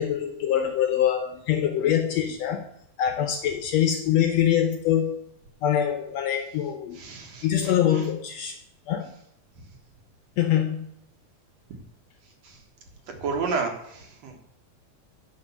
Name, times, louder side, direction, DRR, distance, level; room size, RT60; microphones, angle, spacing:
voice 1, 0.0-2.7 3.0-5.2 5.6-7.0 7.4-8.6 8.9-9.1 10.4-10.9, left 10 dB, 70° left, 6 dB, 1.7 m, -24 dB
voice 2, 6.9-8.1 9.5-9.6 11.7-11.8 12.2-12.6 13.1-14.4, right 4 dB, 60° right, 3 dB, 2.4 m, -32 dB
9.6 x 5.2 x 7.1 m, 0.76 s
omnidirectional pair, 3.6 m